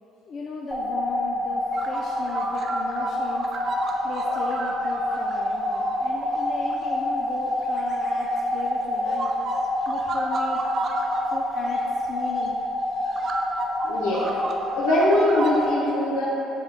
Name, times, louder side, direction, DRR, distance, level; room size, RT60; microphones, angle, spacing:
voice 1, 0.3-3.5 4.0-9.3 9.9-10.6 11.3-12.6, left 4 dB, 50° left, -2 dB, 0.4 m, -37 dB
sound 1, 0.7-15.7, left 1 dB, 20° right, 1.0 m, -27 dB
sound 2, 1.7-7.0 7.6-8.7 9.1-11.2 11.7-11.8 12.4-12.5 13.0-15.7, right 3 dB, 50° right, 0.4 m, -34 dB
voice 2, 3.9-4.4 9.0-9.2 13.8-14.4 14.7-16.3, left 1 dB, 85° left, -7 dB, 0.8 m, -23 dB
4.8 x 2.3 x 4.2 m, 2.9 s
supercardioid pair, 70°, 0 cm